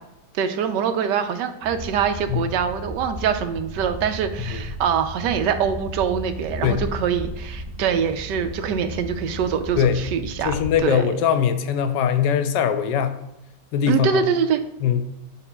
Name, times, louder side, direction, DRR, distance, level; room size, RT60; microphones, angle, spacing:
voice 1, 0.3-10.5 10.8-11.1 13.9-14.6, right 7 dB, 85° right, 9 dB, 1.3 m, -24 dB
sound 1, 1.6-10.8, left 1 dB, 55° right, 0.4 m, -35 dB
voice 2, 10.4-13.2 13.7-14.2 14.8-15.1, left 8 dB, 90° left, 9 dB, 1.3 m, -21 dB
11.0 x 4.1 x 2.3 m, 0.88 s
omnidirectional pair, 1.8 m